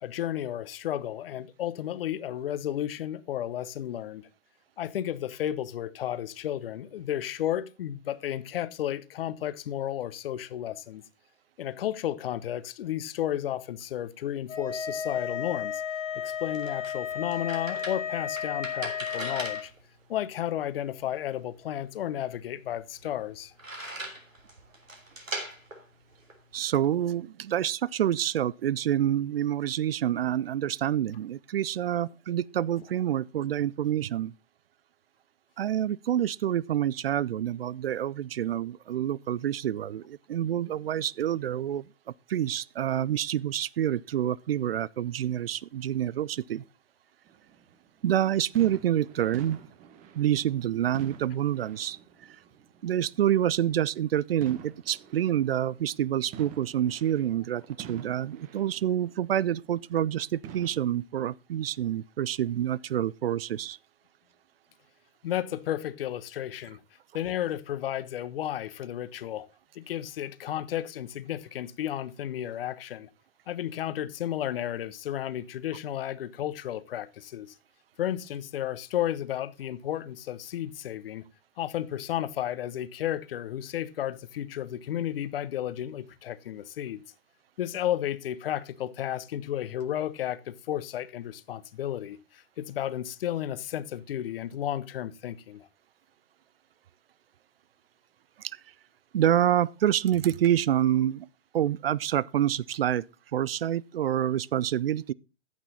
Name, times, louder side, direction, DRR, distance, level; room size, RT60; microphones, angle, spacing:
voice 1, 0.0-4.3 4.8-11.0 11.6-15.8 16.1-19.7 20.1-23.5 65.2-66.8 67.1-69.5 69.7-73.1 73.5-77.5 78.0-81.2 81.6-87.0 87.6-95.7, left 11 dB, 45° left, 1.1 m, -33 dB
sound 1, 14.5-19.6, left 7 dB, 80° left, 2.8 m, -33 dB
sound 2, 16.1-27.0, right 2 dB, 85° right, 3.5 m, -42 dB
voice 2, 26.5-34.3 35.6-41.8 42.3-46.6 48.0-49.6 50.2-52.0 52.8-63.8 98.4-98.6 99.1-101.3 101.5-103.0 103.3-105.1, right 11 dB, 50° right, 0.4 m, -27 dB
sound 3, 47.3-53.3 53.6-53.8 54.4-60.1 60.4-60.9, right 8 dB, 20° right, 1.0 m, -48 dB
14.5 x 6.1 x 4.1 m
figure-of-eight pair, 120°, 38 cm